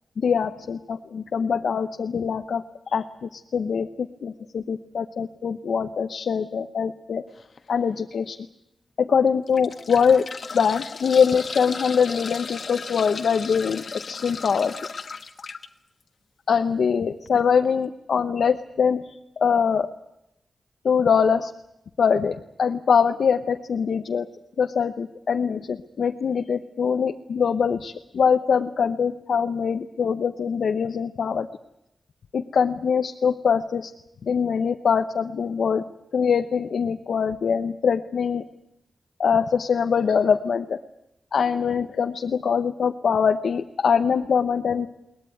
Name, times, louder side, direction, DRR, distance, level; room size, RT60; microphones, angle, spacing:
voice 1, 0.2-7.2 7.7-8.4 9.0-10.3 10.5-14.7 16.5-19.9 20.8-21.5 22.0-24.3 24.6-31.5 32.3-33.9 34.2-35.8 36.1-38.4 39.2-40.8 41.3-44.9, left 6 dB, 80° left, 6 dB, 0.8 m, -23 dB
sound 1, 7.3-7.6 8.2-8.3 9.3-15.7 17.3-17.4 17.6-17.7, left 4 dB, 60° left, 1.3 m, -36 dB
22.0 x 19.5 x 9.2 m, 0.86 s
wide cardioid pair, 100°, 0 cm